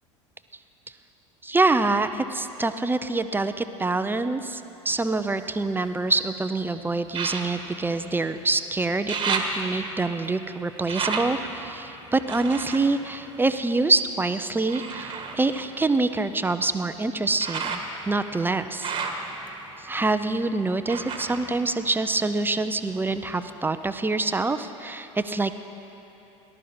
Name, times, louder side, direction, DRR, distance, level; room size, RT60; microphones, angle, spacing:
voice 1, 1.4-17.8 18.1-18.9 19.8-25.6, right 3 dB, 10° right, 10 dB, 0.6 m, -25 dB
sound 1, 4.9-6.3 7.1-8.6 8.9-14.0 14.7-22.5 22.8-23.7 24.1-24.2, right 4 dB, 30° right, 1.6 m, -34 dB
19.0 x 12.0 x 4.3 m, 3.0 s
hypercardioid pair, 80°, 16 cm